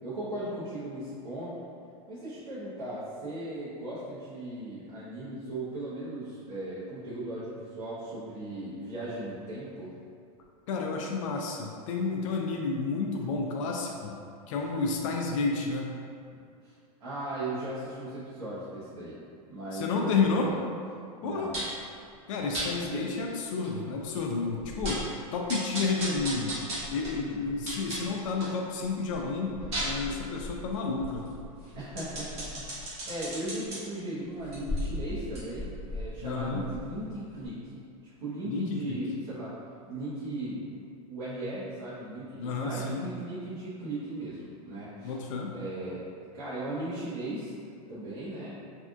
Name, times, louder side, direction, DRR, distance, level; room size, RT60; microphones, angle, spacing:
voice 1, 0.0-1.5 2.1-9.9 16.6-16.7 17.0-19.2 19.5-20.5 21.2-21.5 22.9-23.1 27.1-27.5 31.7-39.5 39.9-40.6 41.1-45.1 45.5-46.1 46.3-47.5 47.9-48.5, right 1 dB, 65° right, -12 dB, 1.1 m, -37 dB
voice 2, 10.7-14.2 14.5-15.9 19.7-20.5 21.2-21.5 22.3-25.0 25.3-26.5 26.9-31.2 36.2-36.6 38.4-39.0 42.3-43.1 45.0-45.5, left 4 dB, 60° left, 0 dB, 0.4 m, -31 dB
sound 1, 21.5-21.8 22.5-22.7 23.2-23.3 23.6-23.7 24.2-24.3 24.6-25.1 25.5-28.6 29.0-33.8 34.4-37.1 37.4-37.5, equal, 35° right, 1.0 m, -36 dB
3.4 x 2.4 x 2.4 m, 2.4 s
supercardioid pair, 130°, 19 cm